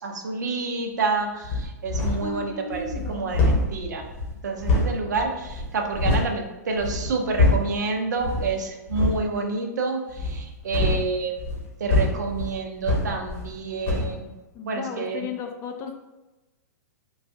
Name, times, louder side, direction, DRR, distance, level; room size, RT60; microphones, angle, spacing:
voice 1, 0.0-4.1 4.4-14.3 14.6-15.3, right 4 dB, 75° right, 3 dB, 0.6 m, -28 dB
sound 1, 1.4-2.4 2.7-6.3 6.7-7.8 8.2-8.5 8.9-9.3 10.1-13.6 13.8-14.2, left 2 dB, 50° left, 1.1 m, -25 dB
voice 2, 2.2-3.4 14.5-15.9, left 3 dB, 30° left, 5 dB, 0.4 m, -34 dB
3.9 x 2.3 x 2.6 m, 1.1 s
hypercardioid pair, 115°, 10 cm